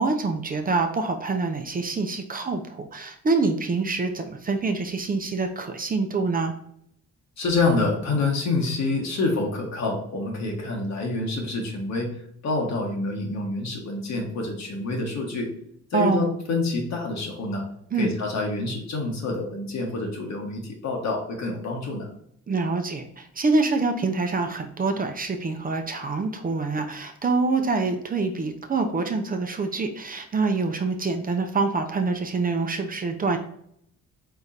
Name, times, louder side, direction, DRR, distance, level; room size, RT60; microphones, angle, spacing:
voice 1, 0.0-6.5 15.9-16.3 17.9-18.1 22.5-33.4, right 3 dB, 30° right, 5 dB, 0.6 m, -26 dB
voice 2, 7.4-12.1 12.4-15.5 15.9-17.6 18.0-22.1, left 3 dB, 60° left, 1 dB, 1.4 m, -27 dB
4.6 x 3.6 x 2.7 m, 0.69 s
cardioid pair, 90°, 30 cm